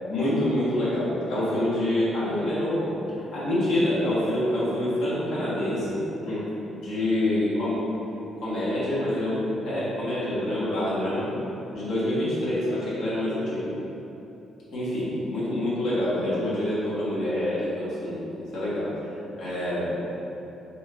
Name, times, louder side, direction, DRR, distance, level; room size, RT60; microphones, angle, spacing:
voice 1, 0.1-6.5 6.8-7.8 8.4-11.3 11.7-13.7 14.7-18.9 19.4-20.0, left 1 dB, 85° left, -9 dB, 1.1 m, -26 dB
4.3 x 2.5 x 2.8 m, 3.0 s
cardioid pair, 90°, 0 cm